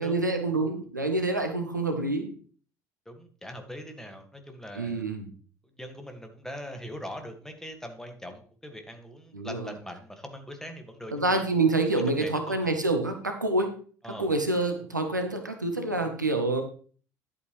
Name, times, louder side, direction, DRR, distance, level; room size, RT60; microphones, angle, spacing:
voice 1, 0.0-2.3 4.7-5.3 9.3-9.7 11.1-13.7 14.2-16.6, right 2 dB, 85° right, 6 dB, 1.1 m, -27 dB
voice 2, 3.1-5.0 5.8-11.4 11.9-12.8 14.0-14.3, equal, 5° left, 5 dB, 2.0 m, -42 dB
11.0 x 8.4 x 3.3 m, 0.43 s
figure-of-eight pair, 60°, 10 cm